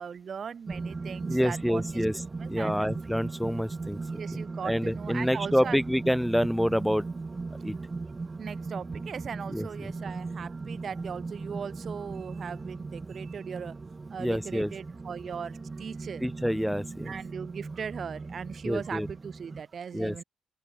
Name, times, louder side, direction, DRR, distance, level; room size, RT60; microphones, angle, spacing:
voice 1, 0.0-1.8 2.4-2.9 4.2-5.8 8.4-13.7 14.1-15.5 15.8-16.2 17.1-20.2, right 7 dB, 60° right, 1.9 m, -38 dB
sound 1, 0.7-19.6, right 3 dB, 35° right, 7.3 m, -38 dB
voice 2, 1.3-2.2 2.5-4.0 4.3-7.1 7.6-7.7 9.5-9.9 14.2-14.7 16.2-17.1 18.6-19.1 19.9-20.2, equal, ahead, 1.8 m, -27 dB
supercardioid pair, 50°, 0 cm